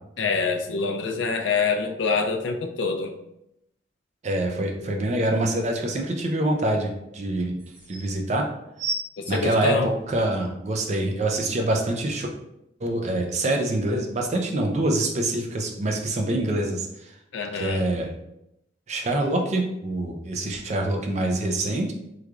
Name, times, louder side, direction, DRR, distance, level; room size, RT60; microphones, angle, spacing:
voice 1, 0.2-3.2 9.2-9.9 17.3-17.9, left 4 dB, 85° left, 5 dB, 0.4 m, -25 dB
voice 2, 4.2-7.6 7.9-8.4 9.3-12.3 12.8-17.1 17.5-18.1 18.9-21.9, right 1 dB, 35° right, 2 dB, 0.4 m, -25 dB
sound 1, 7.5-8.1 8.8-10.4 11.1-11.2, right 3 dB, 90° right, 1.0 m, -33 dB
3.5 x 3.2 x 2.4 m, 0.83 s
head